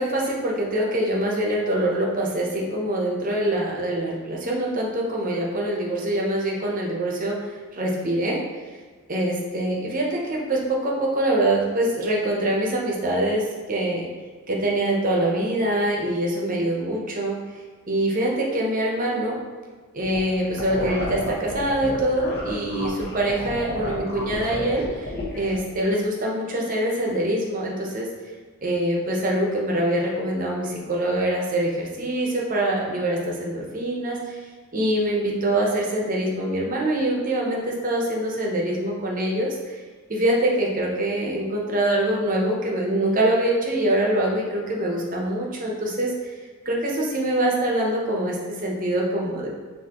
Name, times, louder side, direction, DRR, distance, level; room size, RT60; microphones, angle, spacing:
voice 1, 0.0-8.4 9.1-14.1 14.5-17.4 17.9-19.4 19.9-28.1 28.6-34.4 34.7-39.8 40.1-46.3 46.6-49.5, right 1 dB, 40° right, -2 dB, 0.8 m, -24 dB
sound 1, 20.0-25.6, left 2 dB, 50° left, 0.8 m, -31 dB
6.0 x 2.7 x 2.9 m, 1.4 s
head